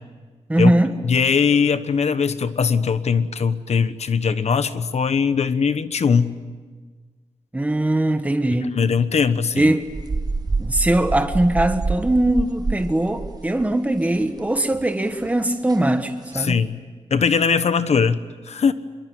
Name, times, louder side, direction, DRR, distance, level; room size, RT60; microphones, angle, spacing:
voice 1, 0.5-0.9 7.5-8.7 9.6-9.8 10.6-16.6, right 1 dB, 10° right, 8 dB, 1.5 m, -20 dB
voice 2, 1.0-6.3 8.8-9.7 16.3-16.8 17.1-18.7, left 6 dB, 70° left, 12 dB, 1.1 m, -20 dB
sound 1, 9.8-14.5 14.7-14.9 15.2-15.3 15.7-15.8 16.3-16.5, right 3 dB, 35° right, 1.3 m, -27 dB
26.0 x 23.0 x 9.4 m, 1.4 s
wide cardioid pair, 170°, 12 cm